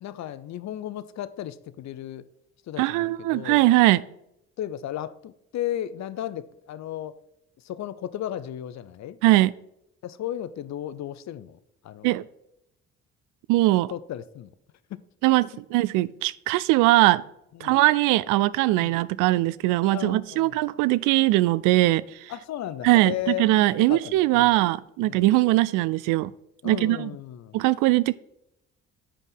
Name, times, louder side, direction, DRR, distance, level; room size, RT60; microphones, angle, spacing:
voice 1, 0.0-2.3 2.7-3.7 4.6-7.1 7.6-9.2 10.0-12.2 13.9-14.5 14.9-15.0 17.5-17.8 18.8-19.0 19.9-20.6 22.3-24.6 25.0-25.3 26.6-27.6, left 11 dB, 60° left, 0.7 m, -35 dB
voice 2, 2.8-4.0 9.2-9.5 12.0-12.2 13.5-13.9 15.2-17.2 17.6-22.3 22.8-26.3 26.6-27.1 27.5-28.1, right 18 dB, 75° right, 0.5 m, -21 dB
8.6 x 5.3 x 5.5 m
hypercardioid pair, 50°, 32 cm